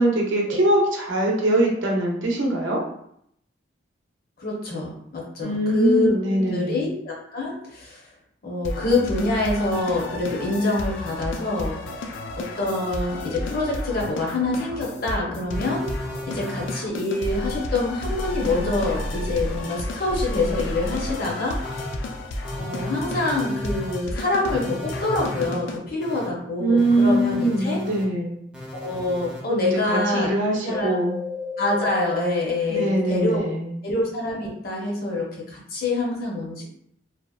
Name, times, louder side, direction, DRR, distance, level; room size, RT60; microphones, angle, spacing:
voice 1, 0.0-2.8 5.4-6.9 26.6-28.4 29.5-31.2 32.7-33.8, right 1 dB, 85° right, -1 dB, 0.6 m, -22 dB
voice 2, 4.4-8.0 8.4-11.8 12.3-15.9 16.3-21.6 22.6-27.8 28.7-31.0 31.6-33.5 33.8-36.6, left 2 dB, 50° left, -3 dB, 0.7 m, -26 dB
sound 1, 8.6-25.8, left 2 dB, 80° left, 0.3 m, -33 dB
sound 2, 15.5-16.7 17.2-17.6 18.0-19.6 20.1-21.1 21.6-21.9 22.4-24.0 24.5-25.5 26.0-26.3 26.8-28.0 28.5-29.4 29.9-30.2 30.7-32.2 32.7-33.4, left 1 dB, 5° right, 0.5 m, -33 dB
2.7 x 2.0 x 2.3 m, 0.71 s
head